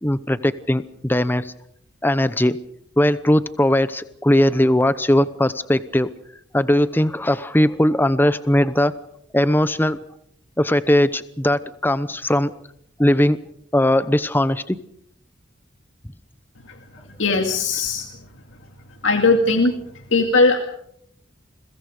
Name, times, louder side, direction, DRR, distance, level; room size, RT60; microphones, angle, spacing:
voice 1, 0.0-1.5 2.0-2.6 3.0-6.1 6.5-8.9 9.3-10.0 10.6-12.5 13.0-13.4 13.7-14.8, left 1 dB, 10° left, 14 dB, 0.8 m, -19 dB
voice 2, 17.2-18.1 19.0-19.7 20.1-20.6, left 3 dB, 90° left, 4 dB, 2.2 m, -18 dB
29.5 x 22.5 x 5.1 m, 0.69 s
head